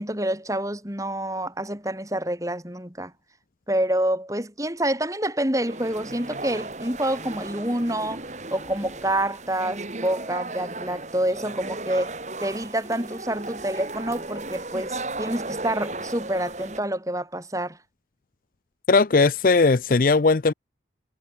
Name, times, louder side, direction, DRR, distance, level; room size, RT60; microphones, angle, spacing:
voice 1, 0.0-3.1 3.7-8.2 8.5-17.8, right 1 dB, 20° right, 5.3 m, -27 dB
sound 1, 5.6-16.8, right 2 dB, 40° right, 2.4 m, -35 dB
voice 2, 18.9-20.5, left 3 dB, 50° left, 0.5 m, -18 dB
head